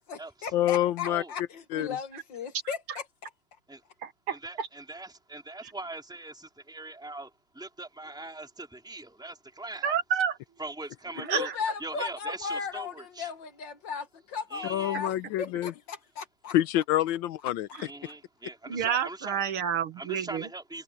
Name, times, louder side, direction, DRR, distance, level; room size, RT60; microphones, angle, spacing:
voice 1, 0.0-2.8 11.1-16.5 17.7-18.1, left 6 dB, 60° left, 2.2 m, -36 dB
voice 2, 0.5-1.2 1.7-1.9 14.7-15.7 16.5-17.7, left 13 dB, 75° left, 1.3 m, -26 dB
voice 3, 2.7-3.0 4.0-4.7 5.6-5.7 9.8-10.4 11.2-11.6 17.7-17.9 18.7-20.5, right 8 dB, 80° right, 2.4 m, -30 dB
voice 4, 4.4-10.0 10.6-11.5 11.8-13.3 14.5-15.0 17.8-19.4 20.0-20.8, right 2 dB, ahead, 3.4 m, -41 dB
omnidirectional pair, 2.4 m